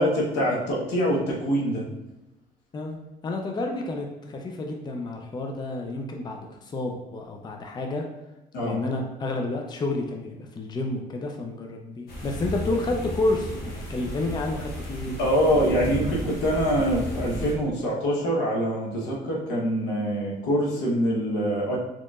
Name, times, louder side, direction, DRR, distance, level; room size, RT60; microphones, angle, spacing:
voice 1, 0.0-1.8 8.5-8.8 15.2-21.8, equal, 90° left, -3 dB, 1.0 m, -24 dB
voice 2, 3.2-8.0 8.6-15.3, left 2 dB, 25° left, 2 dB, 0.5 m, -30 dB
sound 1, 12.1-17.5, equal, 65° left, 1.1 m, -34 dB
4.3 x 2.9 x 2.4 m, 0.95 s
cardioid pair, 110°, 17 cm